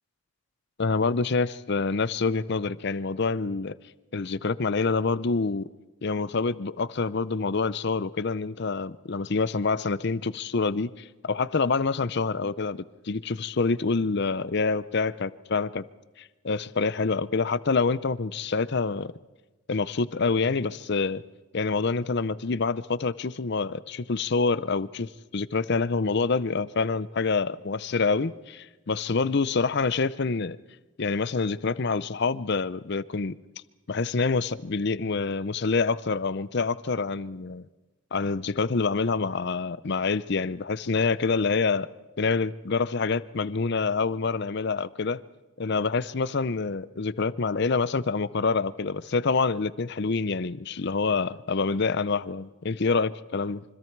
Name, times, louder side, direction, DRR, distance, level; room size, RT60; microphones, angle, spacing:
voice 1, 0.8-3.7 4.1-5.7 6.0-15.8 16.2-19.1 19.7-21.2 21.5-30.6 31.0-33.3 33.9-37.7 38.1-41.9 42.2-45.2 45.6-53.6, left 4 dB, 50° left, 0.6 m, -26 dB
26.0 x 25.0 x 4.7 m
head